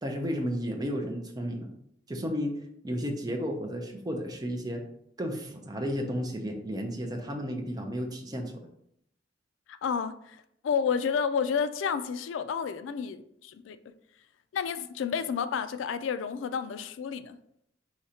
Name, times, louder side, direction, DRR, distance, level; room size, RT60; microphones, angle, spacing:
voice 1, 0.0-1.7 2.1-2.5 2.8-4.8 5.2-8.6, equal, 20° right, 0.5 m, -33 dB
voice 2, 9.7-13.8 14.5-17.4, left 6 dB, 85° left, 0.3 m, -31 dB
4.9 x 3.1 x 2.8 m
head